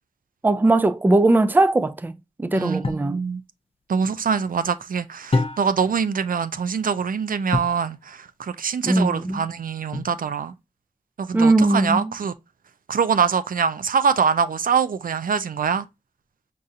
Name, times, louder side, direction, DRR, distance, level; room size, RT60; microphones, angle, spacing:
voice 1, 0.4-2.1 2.4-3.2 8.8-9.4 11.3-12.1, right 2 dB, 15° right, 0.3 m, -19 dB
voice 2, 2.5-3.4 3.9-10.5 11.2-12.3 12.9-15.9, right 6 dB, 80° right, 0.4 m, -24 dB
sound 1, 2.8-3.2 5.3-5.9 7.5-7.9 9.9-10.5, left 3 dB, 40° left, 0.6 m, -26 dB
5.3 x 2.4 x 2.6 m
wide cardioid pair, 80°, 14 cm